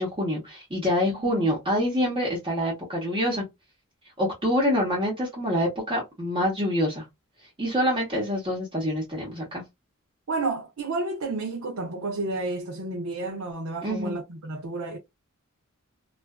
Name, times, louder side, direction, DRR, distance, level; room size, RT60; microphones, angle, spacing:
voice 1, 0.0-3.4 4.2-7.0 7.6-9.6 13.8-14.2, equal, 25° right, 0.9 m, -26 dB
voice 2, 10.3-15.0, right 3 dB, 65° right, 0.6 m, -31 dB
2.4 x 2.3 x 2.2 m
head